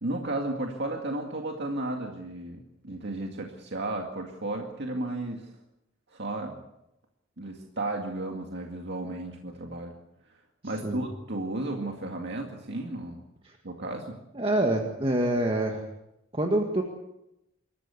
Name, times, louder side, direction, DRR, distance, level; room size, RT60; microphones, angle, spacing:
voice 1, 0.0-5.5 6.1-6.6 7.4-10.0 10.6-13.2 13.6-14.2, right 2 dB, 55° right, 2 dB, 2.1 m, -33 dB
voice 2, 14.3-15.8 16.3-16.8, right 1 dB, 25° right, 2 dB, 1.8 m, -26 dB
26.0 x 14.5 x 8.3 m, 0.87 s
head